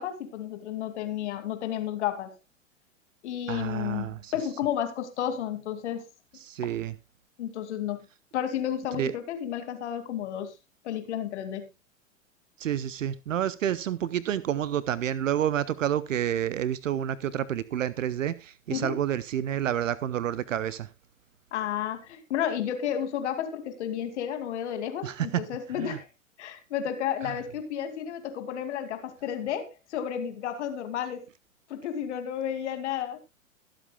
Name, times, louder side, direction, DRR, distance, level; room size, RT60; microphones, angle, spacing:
voice 1, 0.0-2.3 3.2-6.1 7.4-8.0 8.3-10.5 10.8-11.7 18.7-19.0 21.5-26.1 26.4-31.2 31.7-33.2, left 10 dB, 60° left, 2.5 m, -32 dB
voice 2, 3.5-4.2 6.5-6.9 9.0-9.1 12.6-20.9 25.0-25.4 25.8-26.0, right 10 dB, 70° right, 0.8 m, -29 dB
22.5 x 7.7 x 2.3 m
figure-of-eight pair, 105°, 40 cm